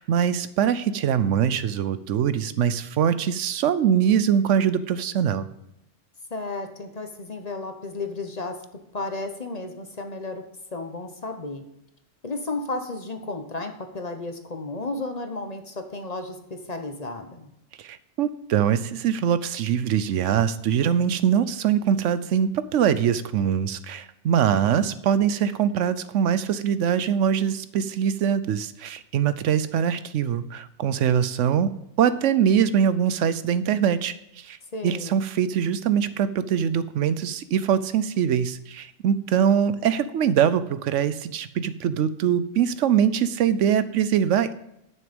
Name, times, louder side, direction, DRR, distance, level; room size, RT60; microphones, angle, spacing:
voice 1, 0.0-5.5 17.8-31.7 32.0-34.6 34.8-44.5, right 8 dB, 75° right, 14 dB, 0.9 m, -23 dB
voice 2, 6.3-8.6 8.9-10.4 10.7-11.6 12.2-17.5 34.7-35.2, left 3 dB, 35° left, 6 dB, 1.0 m, -33 dB
11.0 x 6.5 x 5.2 m, 0.83 s
omnidirectional pair, 1.3 m